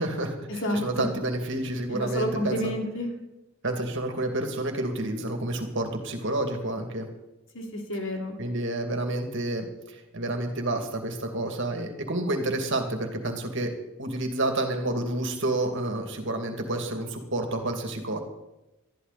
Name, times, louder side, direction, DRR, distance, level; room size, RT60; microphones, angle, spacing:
voice 1, 0.0-2.7 3.6-7.1 8.4-13.7 14.0-18.2, right 2 dB, 55° right, 4 dB, 2.5 m, -29 dB
voice 2, 0.6-1.1 1.9-3.1 7.5-8.4, equal, 60° left, 2 dB, 3.0 m, -29 dB
20.0 x 13.5 x 4.2 m, 0.97 s
head